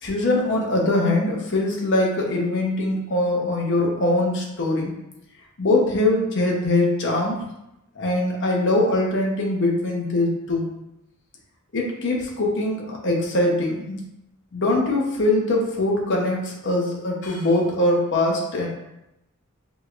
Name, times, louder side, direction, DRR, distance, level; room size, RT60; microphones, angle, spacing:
voice 1, 0.0-4.9 5.6-7.4 7.9-10.7 11.7-14.0 14.5-18.7, left 2 dB, 55° left, -1 dB, 0.9 m, -22 dB
5.3 x 3.1 x 2.5 m, 0.86 s
head